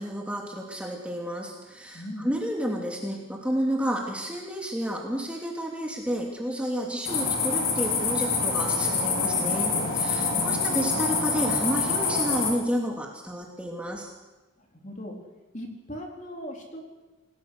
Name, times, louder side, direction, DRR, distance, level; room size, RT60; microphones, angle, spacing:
voice 1, 0.0-14.1, equal, 5° right, -1 dB, 2.7 m, -31 dB
voice 2, 1.9-2.3 10.2-10.5 14.7-15.2 15.5-16.8, equal, 35° left, 1 dB, 4.1 m, -38 dB
sound 1, 7.0-12.5, left 4 dB, 60° left, 4.7 m, -26 dB
28.5 x 18.5 x 6.7 m, 1.1 s
head